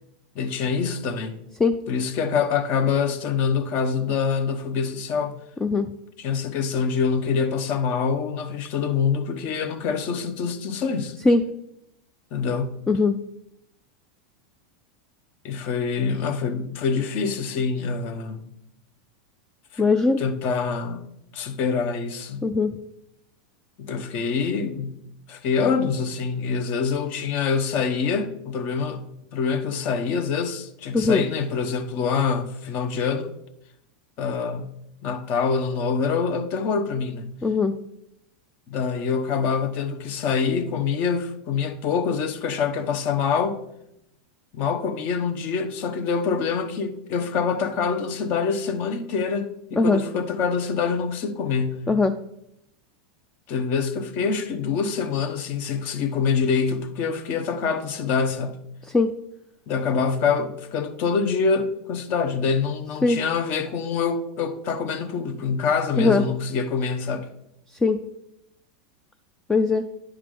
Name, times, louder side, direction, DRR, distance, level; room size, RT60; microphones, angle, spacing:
voice 1, 0.3-1.4 1.9-5.3 6.2-11.2 12.3-12.8 15.4-18.5 19.7-19.9 20.2-21.1 21.3-22.5 23.8-25.0 25.3-33.3 34.2-34.8 35.0-37.3 38.7-43.6 44.5-51.8 53.5-58.6 59.7-67.3, left 5 dB, 45° left, 0.9 m, -25 dB
voice 2, 12.9-13.2 19.8-20.2 22.4-22.7 30.9-31.2 37.4-37.7 49.8-50.0 51.9-52.1 58.9-59.1 63.0-63.2 66.0-66.2 67.8-68.0 69.5-69.8, left 3 dB, 10° left, 0.3 m, -19 dB
9.9 x 4.8 x 3.7 m
supercardioid pair, 135°, 4 cm